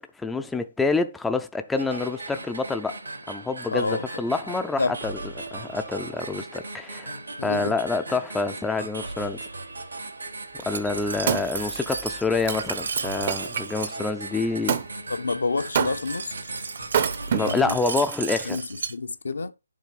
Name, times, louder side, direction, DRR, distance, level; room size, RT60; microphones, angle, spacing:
voice 1, 0.0-3.0 3.3-5.1 5.5-9.4 10.6-14.8 17.3-18.6, left 3 dB, 5° left, 0.5 m, -27 dB
sound 1, 1.8-17.6, right 2 dB, 85° right, 3.1 m, -38 dB
voice 2, 3.7-4.1 4.8-5.0 7.4-7.8 15.1-16.4 17.3-18.1 18.4-19.5, left 3 dB, 75° left, 0.9 m, -29 dB
Glass, 10.6-13.9 15.6-18.9, right 5 dB, 65° right, 1.7 m, -34 dB
Wood, 10.7-13.7 14.7-14.9 15.7-16.3 16.8-17.8 18.5-18.6, right 8 dB, 45° right, 0.9 m, -28 dB
7.4 x 3.0 x 5.8 m
figure-of-eight pair, 145°, 0 cm